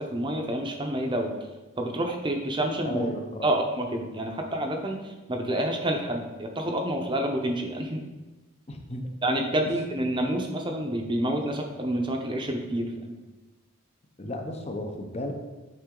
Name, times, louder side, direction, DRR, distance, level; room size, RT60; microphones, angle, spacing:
voice 1, 0.0-1.4 1.8-3.1 3.4-8.0 9.2-13.1, right 1 dB, 20° right, 3 dB, 0.7 m, -28 dB
voice 2, 2.8-3.5 8.7-9.0 14.2-15.3, left 1 dB, 30° left, 4 dB, 0.7 m, -34 dB
8.8 x 3.9 x 3.7 m, 1.2 s
head